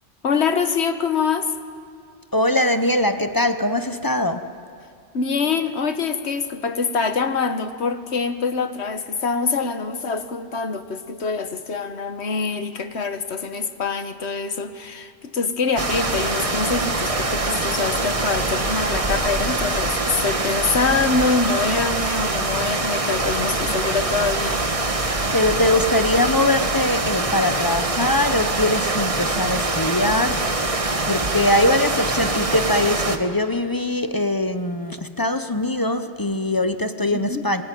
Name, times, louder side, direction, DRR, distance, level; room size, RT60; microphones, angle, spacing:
voice 1, 0.2-1.5 5.1-24.6 37.1-37.4, left 5 dB, 70° left, 9 dB, 1.5 m, -24 dB
voice 2, 2.3-4.5 25.3-37.6, left 1 dB, 20° left, 9 dB, 0.8 m, -22 dB
sound 1, 15.8-33.2, right 2 dB, 30° right, 1.4 m, -24 dB
26.5 x 21.5 x 9.2 m, 2.3 s
omnidirectional pair, 1.2 m